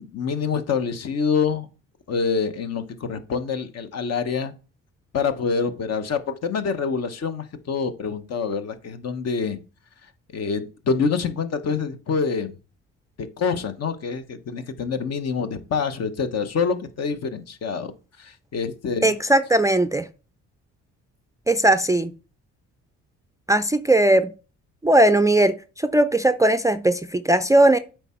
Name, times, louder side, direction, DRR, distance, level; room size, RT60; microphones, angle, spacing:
voice 1, 0.0-1.7 2.1-4.5 5.1-9.6 10.3-12.5 13.4-17.9 18.2-19.1, left 5 dB, 55° left, 1.0 m, -26 dB
voice 2, 19.0-20.1 21.5-22.1 23.5-24.3 24.8-27.8, right 1 dB, 10° right, 0.4 m, -18 dB
8.0 x 4.6 x 4.4 m
cardioid pair, 90°, 30 cm